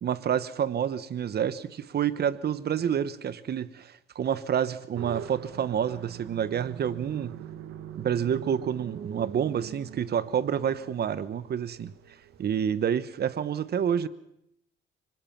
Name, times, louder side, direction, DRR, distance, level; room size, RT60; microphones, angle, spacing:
voice 1, 0.0-7.3 7.9-11.9 12.4-14.1, right 8 dB, 55° right, 1.0 m, -28 dB
sound 1, 4.9-12.7, right 10 dB, 85° right, 1.3 m, -43 dB
24.5 x 20.5 x 5.9 m
cardioid pair, 90°, 20 cm